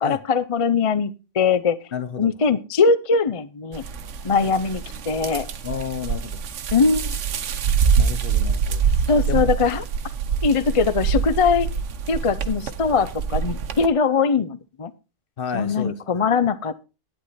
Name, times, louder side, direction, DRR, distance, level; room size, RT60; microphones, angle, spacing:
voice 1, 0.0-1.8 2.2-3.8 4.2-5.5 6.7-7.1 9.1-9.8 10.4-11.7 12.1-14.9 15.5-16.8, left 5 dB, 35° left, 0.6 m, -21 dB
voice 2, 1.9-2.3 5.6-6.4 8.0-8.9 9.3-9.4 15.4-16.3, left 7 dB, 55° left, 1.0 m, -31 dB
sound 1, 3.7-13.9, right 6 dB, 80° right, 1.2 m, -25 dB
11.5 x 10.0 x 4.2 m
omnidirectional pair, 1.2 m